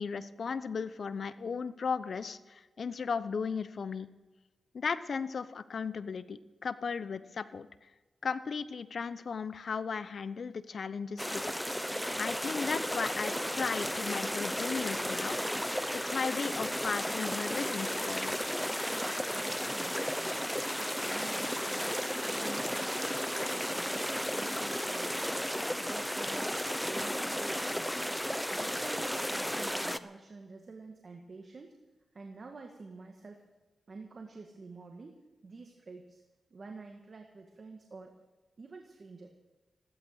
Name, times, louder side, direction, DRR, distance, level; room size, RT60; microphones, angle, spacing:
voice 1, 0.0-4.1 4.7-7.7 8.2-11.5 12.2-15.4 15.6-18.4, left 5 dB, 65° left, 14 dB, 0.8 m, -36 dB
sound 1, 11.2-30.0, equal, 5° left, 0.8 m, -34 dB
voice 2, 19.3-20.4 20.8-23.2 23.5-25.4 25.8-26.5 26.8-28.2 28.5-31.7 32.1-33.4 33.9-35.2 35.4-36.2 36.5-38.1 38.6-39.3, right 3 dB, 50° right, 3 dB, 1.7 m, -49 dB
15.5 x 12.5 x 6.4 m, 1.2 s
cardioid pair, 65°, 0 cm